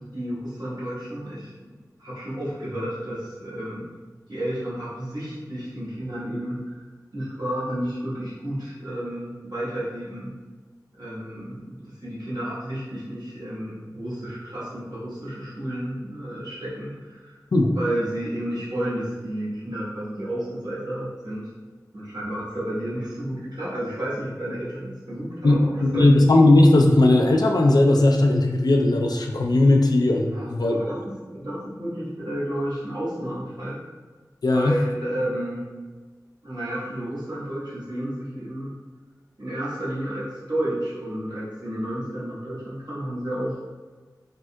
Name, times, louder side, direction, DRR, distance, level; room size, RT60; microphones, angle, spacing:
voice 1, 0.1-1.7 2.0-3.9 4.3-6.8 7.1-10.3 11.0-17.4 17.7-21.5 21.9-26.1 30.3-31.0 31.2-33.8 34.5-35.7 36.4-38.7 39.4-43.6, right 1 dB, 75° right, -10 dB, 1.2 m, -31 dB
voice 2, 25.4-30.8 34.4-34.8, left 2 dB, 75° left, 1 dB, 0.4 m, -17 dB
3.5 x 2.7 x 2.2 m, 1.4 s
wide cardioid pair, 40°, 7 cm